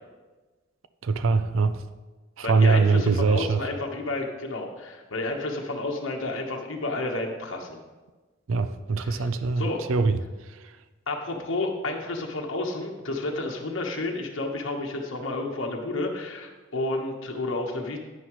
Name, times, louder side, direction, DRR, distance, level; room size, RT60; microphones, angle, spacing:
voice 1, 1.0-1.8 2.4-3.6 8.5-10.2, right 4 dB, 80° right, 11 dB, 0.5 m, -22 dB
voice 2, 2.4-7.8 9.0-9.3 9.6-9.8 11.1-18.0, left 2 dB, 70° left, 1 dB, 1.1 m, -31 dB
9.7 x 9.6 x 3.1 m, 1.2 s
head